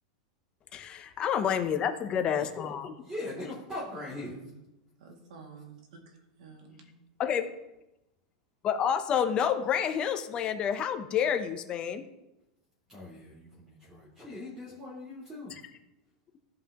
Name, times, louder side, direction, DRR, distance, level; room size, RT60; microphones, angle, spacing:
voice 1, 0.7-3.0 7.2-7.5 8.6-12.0 15.5-15.6, left 8 dB, 25° left, 0.7 m, -29 dB
voice 2, 3.0-4.4 12.9-15.5, left 1 dB, 10° right, 2.3 m, -40 dB
voice 3, 4.1-4.6 5.0-6.9, right 4 dB, 75° right, 2.1 m, -50 dB
15.5 x 5.5 x 2.9 m
supercardioid pair, 160°, 4 cm